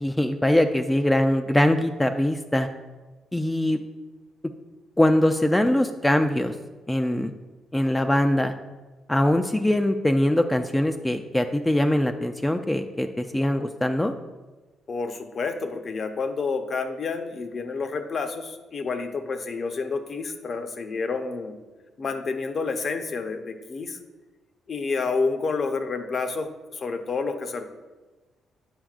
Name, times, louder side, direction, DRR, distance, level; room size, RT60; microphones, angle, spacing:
voice 1, 0.0-2.7 3.3-3.8 5.0-6.5 6.9-7.3 7.7-8.5 9.1-14.1, left 1 dB, 10° left, 6 dB, 0.3 m, -22 dB
voice 2, 14.9-21.6 22.0-24.0 24.7-27.6, left 4 dB, 45° left, 7 dB, 0.6 m, -29 dB
8.8 x 5.1 x 2.4 m, 1.2 s
cardioid pair, 90°, 0 cm